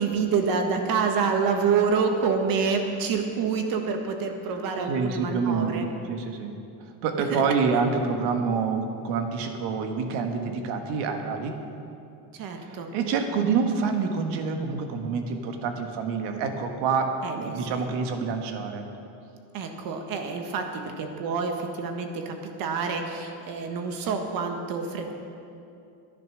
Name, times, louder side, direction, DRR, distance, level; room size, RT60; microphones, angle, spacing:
voice 1, 0.0-5.9 7.3-7.4 12.3-12.9 17.2-17.9 19.5-25.1, right 5 dB, 55° right, 4 dB, 1.6 m, -27 dB
voice 2, 4.9-5.8 6.1-6.5 7.0-11.5 12.9-18.8, right 5 dB, 90° right, 5 dB, 1.5 m, -27 dB
12.5 x 10.5 x 6.3 m, 2.6 s
cardioid pair, 160°, 40 cm